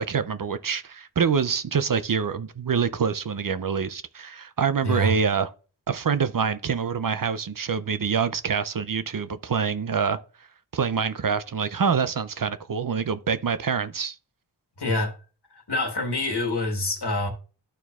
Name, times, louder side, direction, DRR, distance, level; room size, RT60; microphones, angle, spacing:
voice 1, 0.0-5.5 5.9-10.2 10.7-14.2, right 6 dB, 50° right, 0.5 m, -26 dB
voice 2, 4.8-5.2 14.8-15.1 15.5-17.3, left 1 dB, 65° left, 1.6 m, -26 dB
13.0 x 4.5 x 2.4 m
wide cardioid pair, 50°, 43 cm